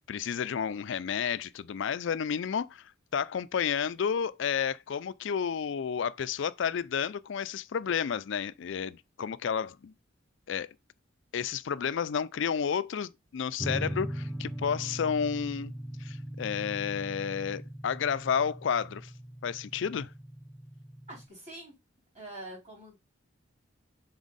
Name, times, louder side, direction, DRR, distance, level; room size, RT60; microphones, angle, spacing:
voice 1, 0.0-9.9 10.5-10.7 11.3-15.7 16.0-19.1 19.4-20.1, left 7 dB, 65° left, 0.4 m, -31 dB
sound 1, 13.6-21.3, equal, ahead, 0.4 m, -40 dB
voice 2, 21.1-21.7 22.1-23.0, right 1 dB, 35° right, 3.6 m, -45 dB
6.2 x 4.4 x 3.9 m
head